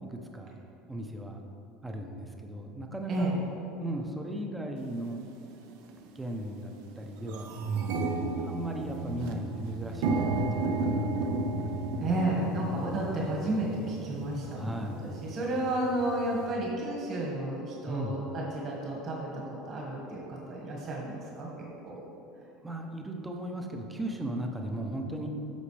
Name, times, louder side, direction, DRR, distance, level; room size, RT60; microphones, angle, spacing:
voice 1, 0.1-0.6 0.9-1.4 1.8-3.3 3.8-5.2 6.1-7.5 8.4-11.3 14.5-15.0 17.9-18.2 22.6-25.3, right 1 dB, 10° right, 2 dB, 0.7 m, -37 dB
voice 2, 3.1-3.4 12.0-22.0, right 1 dB, 35° right, -4 dB, 1.8 m, -32 dB
sound 1, 4.9-5.0 5.8-6.0 6.4-6.5 6.8-16.5, right 2 dB, 70° right, 0.7 m, -33 dB
10.5 x 6.4 x 3.4 m, 2.9 s
cardioid pair, 145°, 0 cm